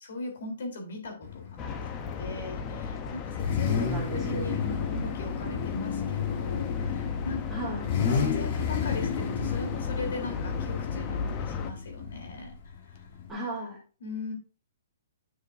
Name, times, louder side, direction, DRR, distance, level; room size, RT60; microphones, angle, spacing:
voice 1, 0.1-1.8 2.2-7.4 8.2-12.5 12.8-13.0 14.0-14.3, left 2 dB, 70° left, 3 dB, 3.6 m, -39 dB
Car / Idling / Accelerating revving vroom, 1.2-13.3, left 6 dB, 40° left, 1.5 m, -32 dB
sound 1, 1.6-11.7, left 5 dB, 25° left, 0.8 m, -36 dB
voice 2, 3.7-4.6 7.5-7.9 13.3-13.8, right 1 dB, 5° right, -5 dB, 2.5 m, -35 dB
9.9 x 6.5 x 2.7 m, 0.35 s
hypercardioid pair, 155°, 0 cm